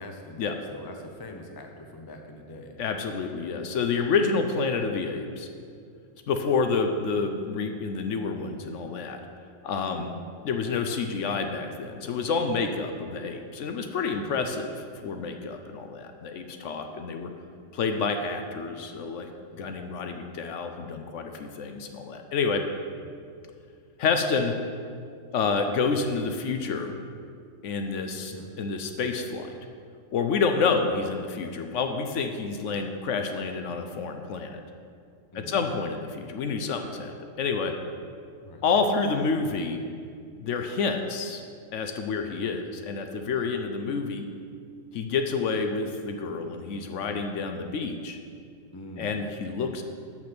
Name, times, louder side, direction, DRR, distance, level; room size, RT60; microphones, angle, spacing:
voice 1, 0.0-2.8 9.8-10.1 14.1-14.4 19.5-19.9 23.0-23.2 28.3-28.5 35.3-35.6 38.4-38.6 48.7-49.3, left 1 dB, 30° left, 3 dB, 0.4 m, -43 dB
voice 2, 2.8-5.5 6.3-9.2 9.6-10.1 10.4-14.7 15.0-17.3 17.7-22.6 24.0-24.5 25.3-27.0 27.6-29.6 30.1-34.6 35.3-37.7 38.6-39.8 40.4-41.4 41.7-44.3 44.9-48.2 49.0-49.8, left 4 dB, 65° left, 6 dB, 0.9 m, -28 dB
7.2 x 6.0 x 5.9 m, 2.3 s
omnidirectional pair, 1.5 m